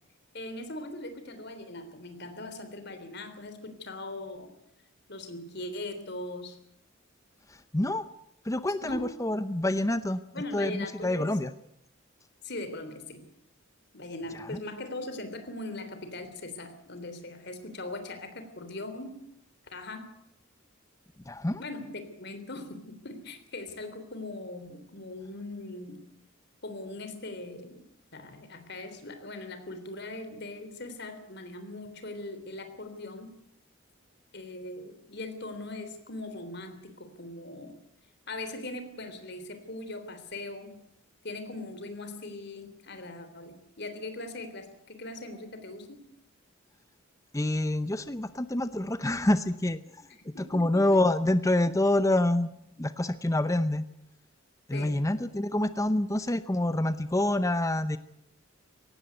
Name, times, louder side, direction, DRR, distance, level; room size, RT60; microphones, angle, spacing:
voice 1, 0.3-4.5 5.1-6.6 8.8-9.1 10.3-11.4 12.4-13.3 13.9-19.2 19.7-20.1 21.6-26.0 26.6-27.8 28.1-33.3 34.3-37.8 38.3-40.8 41.2-46.1 50.3-50.8 54.7-55.0, left 2 dB, 55° left, 9 dB, 3.4 m, -40 dB
voice 2, 7.7-8.0 8.4-10.2 10.5-11.5 14.3-14.6 21.3-21.6 47.3-49.8 50.3-52.5 52.8-53.8 54.7-58.0, left 1 dB, 15° left, 12 dB, 0.7 m, -27 dB
18.0 x 16.5 x 9.3 m, 0.79 s
head